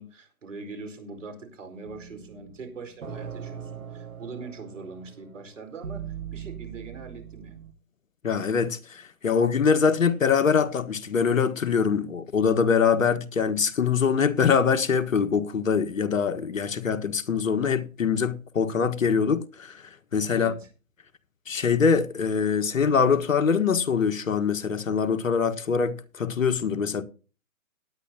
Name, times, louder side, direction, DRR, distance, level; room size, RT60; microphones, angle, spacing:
voice 1, 0.0-7.6 20.2-20.7, right 3 dB, 60° right, 4.8 m, -42 dB
sound 1, 1.9-7.7, right 8 dB, 80° right, 1.9 m, -40 dB
voice 2, 8.2-19.8 20.1-20.5 21.5-27.0, left 6 dB, 70° left, 1.7 m, -23 dB
18.0 x 10.5 x 2.8 m
hypercardioid pair, 150°, 42 cm